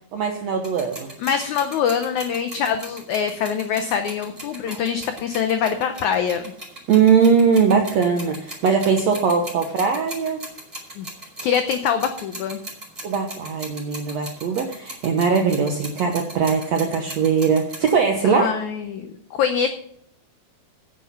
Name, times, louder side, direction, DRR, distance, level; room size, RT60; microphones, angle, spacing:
voice 1, 0.1-1.1 6.9-10.4 13.0-18.5, right 6 dB, 75° right, 4 dB, 1.6 m, -20 dB
sound 1, 0.6-18.0, right 1 dB, 15° right, 4.2 m, -39 dB
voice 2, 1.2-6.5 11.0-11.1 11.4-12.6 18.2-19.7, left 7 dB, 90° left, 8 dB, 1.6 m, -24 dB
10.0 x 9.0 x 5.6 m, 0.68 s
omnidirectional pair, 4.5 m